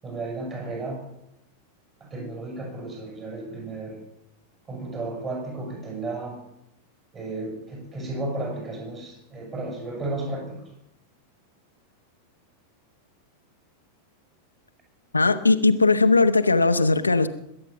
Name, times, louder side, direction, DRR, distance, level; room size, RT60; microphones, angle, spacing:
voice 1, 0.0-1.0 2.0-4.0 4.7-6.4 7.1-10.6, right 2 dB, 25° right, 1 dB, 7.2 m, -33 dB
voice 2, 15.1-17.3, left 3 dB, 80° left, 9 dB, 0.8 m, -19 dB
21.0 x 9.1 x 6.8 m, 0.82 s
figure-of-eight pair, 90°, 0 cm